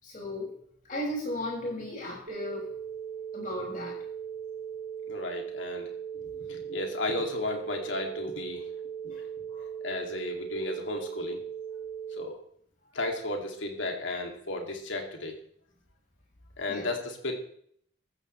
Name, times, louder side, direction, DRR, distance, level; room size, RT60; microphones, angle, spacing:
voice 1, 0.0-0.5 0.9-2.7 3.3-4.0 9.1-9.2 9.5-9.7 16.7-16.9, left 1 dB, 45° left, -3 dB, 6.5 m, -35 dB
sound 1, 2.3-12.3, right 8 dB, 80° right, 4.2 m, -39 dB
voice 2, 5.1-8.7 9.0-9.2 9.8-11.4 12.2-12.4 12.9-15.4 16.6-17.3, left 2 dB, 90° left, 2 dB, 2.8 m, -34 dB
14.5 x 14.0 x 3.4 m, 0.66 s
head